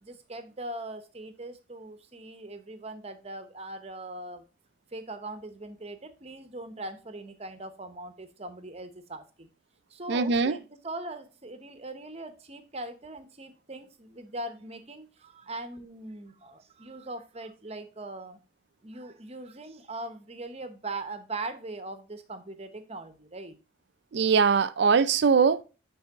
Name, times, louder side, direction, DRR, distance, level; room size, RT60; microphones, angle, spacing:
voice 1, 0.0-4.4 4.9-9.5 9.9-18.4 18.8-23.6, right 2 dB, 30° right, 0.8 m, -40 dB
voice 2, 10.1-10.6 24.1-25.6, right 5 dB, 55° right, 0.4 m, -22 dB
8.7 x 3.4 x 3.4 m
head